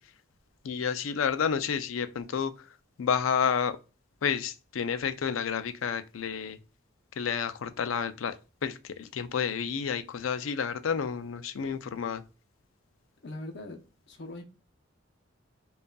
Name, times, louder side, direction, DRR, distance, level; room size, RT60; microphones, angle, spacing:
voice 1, 0.6-2.7 3.0-3.8 4.2-6.6 7.2-12.2, left 7 dB, 85° left, 0.4 m, -30 dB
voice 2, 13.2-13.8 14.1-14.4, left 1 dB, 60° left, 0.8 m, -40 dB
5.2 x 2.4 x 2.2 m
head